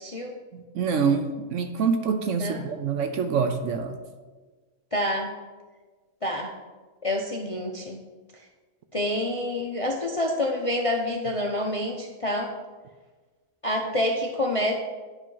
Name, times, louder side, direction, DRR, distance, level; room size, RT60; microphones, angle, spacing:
voice 1, 0.0-0.4 2.4-2.7 4.9-5.3 6.2-6.6 7.0-8.0 8.9-12.5 13.6-14.7, left 1 dB, 35° left, 1 dB, 0.5 m, -27 dB
voice 2, 0.5-4.0, right 5 dB, 65° right, 7 dB, 0.9 m, -26 dB
9.8 x 5.3 x 5.5 m, 1.4 s
omnidirectional pair, 1.6 m